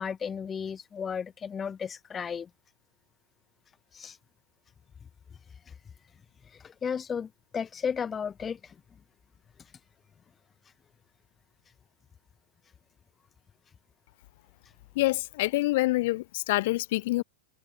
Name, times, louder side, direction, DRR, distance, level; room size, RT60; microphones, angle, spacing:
voice 1, 0.0-2.5 3.9-4.2 5.7-5.8 6.4-8.8, left 7 dB, 20° left, 0.3 m, -34 dB
voice 2, 14.9-17.2, left 19 dB, 60° left, 0.7 m, -26 dB
hypercardioid pair, 115°, 0 cm